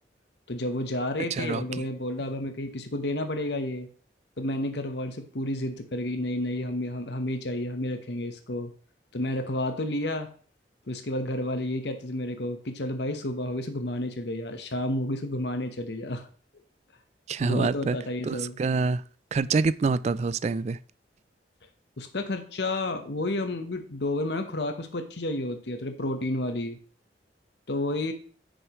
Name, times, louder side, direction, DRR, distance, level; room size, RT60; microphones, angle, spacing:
voice 1, 0.5-3.9 4.4-8.7 9.1-10.3 10.9-16.3 17.4-18.6 22.0-26.8 27.7-28.1, left 1 dB, 70° left, 1.0 m, -31 dB
voice 2, 1.3-1.8 2.2-2.3 17.3-18.0 18.2-19.0 19.3-20.8, right 4 dB, 40° right, 0.3 m, -26 dB
9.5 x 6.5 x 3.0 m
head